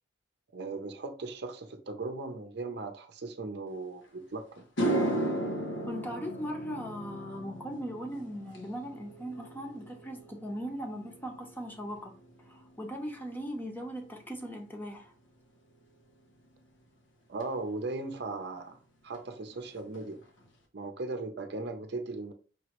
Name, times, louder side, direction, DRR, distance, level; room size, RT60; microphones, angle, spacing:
voice 1, 0.5-4.7 17.3-18.8 19.0-20.2 20.7-22.3, right 3 dB, 60° right, 0.6 m, -38 dB
sound 1, 4.0-4.1 4.6-13.1 13.4-13.8 17.4-17.5 19.1-19.2 19.5-19.7 19.9-20.5, right 1 dB, 90° left, 0.9 m, -36 dB
voice 2, 5.9-12.1 12.5-15.1, equal, 10° left, 0.7 m, -39 dB
5.2 x 3.0 x 3.0 m
head